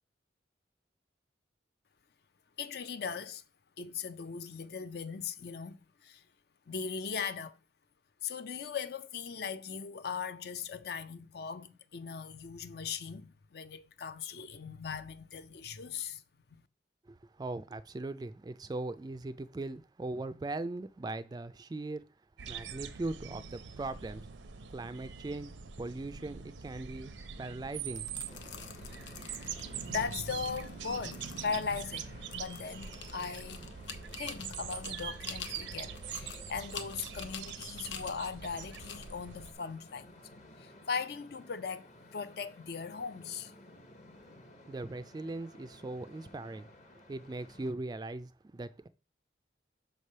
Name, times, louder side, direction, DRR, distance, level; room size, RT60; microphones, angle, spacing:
voice 1, 2.6-3.4 3.8-6.2 6.7-7.6 8.2-16.2 16.5-16.6 29.9-33.6 34.2-40.1 40.6-43.5, left 6 dB, 55° left, 0.5 m, -39 dB
voice 2, 17.1-22.0 22.5-24.2 24.7-27.1 27.4-28.1 44.7-46.7 47.1-48.9, right 2 dB, 20° right, 0.3 m, -39 dB
sound 1, 22.4-39.5, right 7 dB, 80° right, 0.6 m, -43 dB
sound 2, 27.8-40.5, left 7 dB, 80° left, 0.8 m, -48 dB
sound 3, 28.3-47.7, left 1 dB, 40° left, 0.9 m, -55 dB
6.6 x 3.3 x 5.4 m
head